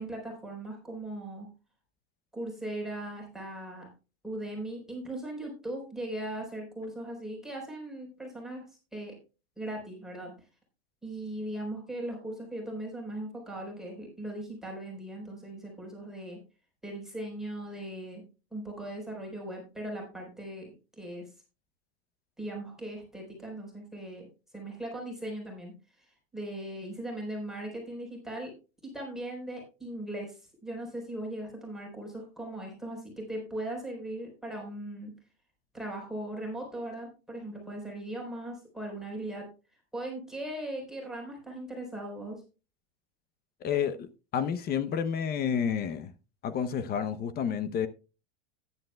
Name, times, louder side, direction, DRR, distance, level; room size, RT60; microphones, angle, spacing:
voice 1, 0.0-1.5 2.3-3.9 4.2-8.7 8.9-9.2 9.6-10.3 11.0-16.4 16.8-18.2 18.5-21.3 22.4-24.3 24.5-26.1 26.3-28.5 28.8-35.1 35.7-39.5 39.9-42.4, right 1 dB, ahead, 4.1 m, -39 dB
voice 2, 43.6-46.1 46.4-47.9, left 7 dB, 30° left, 0.7 m, -30 dB
14.0 x 10.5 x 2.2 m
supercardioid pair, 140°, 33 cm